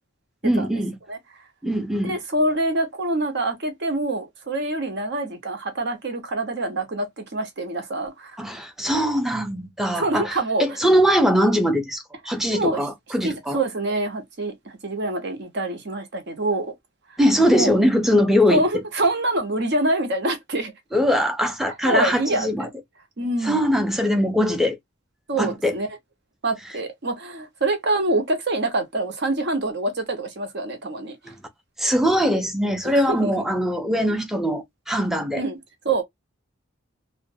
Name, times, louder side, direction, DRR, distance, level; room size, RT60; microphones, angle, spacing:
voice 1, 0.4-1.0 1.6-2.2 8.4-13.6 17.2-18.6 20.9-22.7 23.4-24.8 25.4-25.8 31.2-31.4 31.8-35.4, equal, ahead, 0.5 m, -21 dB
voice 2, 2.0-8.4 10.0-10.6 12.5-12.9 13.2-16.7 17.5-17.7 18.5-20.7 21.8-22.5 23.2-23.7 25.3-25.9 26.4-31.2 32.8-33.4 35.3-35.6 35.8-36.0, right 2 dB, 60° right, 0.8 m, -25 dB
2.4 x 2.1 x 2.6 m
head